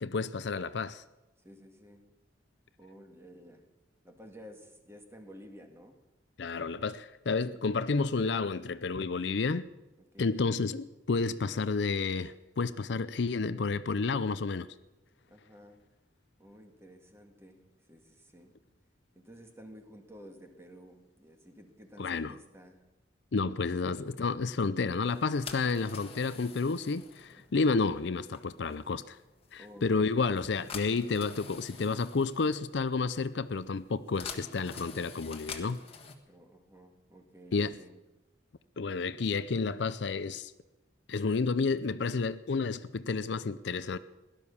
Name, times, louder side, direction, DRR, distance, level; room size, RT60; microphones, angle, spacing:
voice 1, 0.0-1.0 6.4-9.7 10.2-14.7 22.0-22.3 23.3-29.2 29.5-35.8 37.5-37.7 38.8-40.5 41.1-44.0, left 4 dB, 65° left, 0.5 m, -30 dB
voice 2, 1.4-2.1 2.8-3.7 4.0-6.0 7.5-7.6 10.0-10.4 15.3-15.9 16.4-18.5 19.2-22.8 27.4-27.7 29.6-30.3 36.3-38.1, equal, 15° right, 1.9 m, -53 dB
sound 1, 25.0-36.1, left 5 dB, 30° left, 1.6 m, -47 dB
17.0 x 11.5 x 7.1 m
head